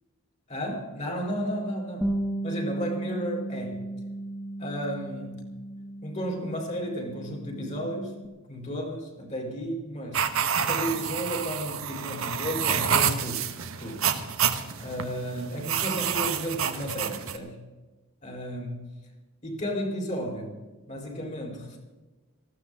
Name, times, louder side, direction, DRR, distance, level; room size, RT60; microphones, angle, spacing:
voice 1, 0.5-2.1 2.4-3.9 4.6-5.4 6.0-8.1 8.5-10.3 10.6-13.5 13.8-14.0 14.8-17.6 18.2-18.9 19.4-20.6 20.9-21.8, equal, 35° left, 2 dB, 3.9 m, -33 dB
Bass guitar, 2.0-8.3, right 1 dB, ahead, 0.8 m, -35 dB
sound 1, 10.1-17.4, right 7 dB, 65° right, 1.2 m, -28 dB
19.5 x 15.5 x 3.7 m, 1.2 s
head